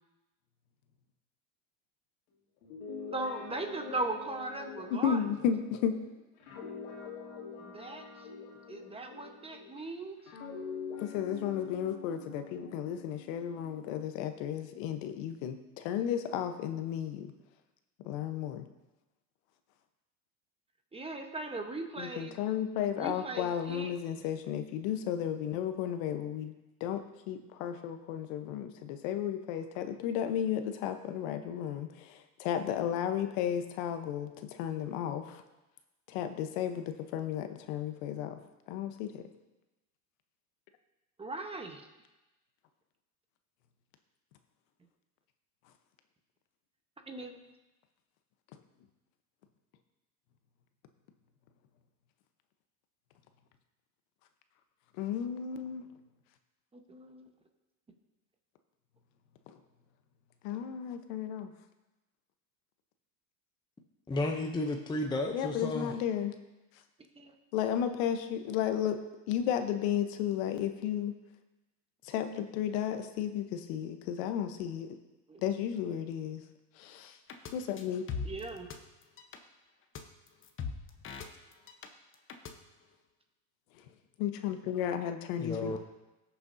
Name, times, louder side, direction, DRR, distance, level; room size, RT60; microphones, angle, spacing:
Guitar, 2.6-9.8 10.3-14.0, left 5 dB, 90° left, 2.7 m, -45 dB
voice 1, 3.1-5.2 7.6-8.3 8.7-10.3 20.9-22.4 23.0-23.9 41.2-41.9 47.1-47.4 56.7-57.3 67.1-67.3 75.3-75.4 78.2-78.7, right 2 dB, 15° right, 4 dB, 1.1 m, -38 dB
voice 2, 4.9-5.9 11.0-17.3 18.0-18.6 22.0-26.5 26.8-27.0 27.3-34.3 34.6-35.4 36.1-38.4 38.7-39.2 55.0-55.8 59.5-59.6 60.4-61.5 65.3-66.3 67.5-69.0 69.3-71.1 72.0-74.9 75.4-76.4 76.8-77.2 77.5-78.0 84.2-85.8, left 9 dB, 65° left, 8 dB, 1.0 m, -33 dB
voice 3, 64.1-65.9 85.4-85.8, left 2 dB, 10° left, 3 dB, 0.6 m, -33 dB
sound 1, 77.3-77.5 77.8-78.8 79.0-79.4 80.0-80.1 80.3-81.9 82.1-82.5, left 5 dB, 30° left, 1.0 m, -40 dB
18.0 x 6.8 x 2.7 m, 1.0 s
supercardioid pair, 115°, 42 cm